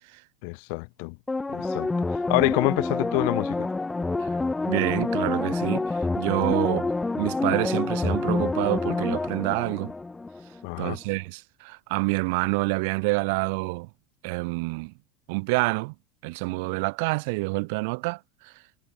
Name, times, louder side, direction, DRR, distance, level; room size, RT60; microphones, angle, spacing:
voice 1, 0.4-1.2 1.5-3.7 10.6-11.0, left 36 dB, 70° left, 0.4 m, -27 dB
sound 1, 1.3-10.7 11.0-11.1, left 3 dB, 10° left, 1.2 m, -27 dB
voice 2, 4.7-6.9 7.2-9.9 10.8-13.9 14.2-14.9 15.3-15.9 16.2-18.5, right 29 dB, 70° right, 0.7 m, -27 dB
supercardioid pair, 125°, 0 cm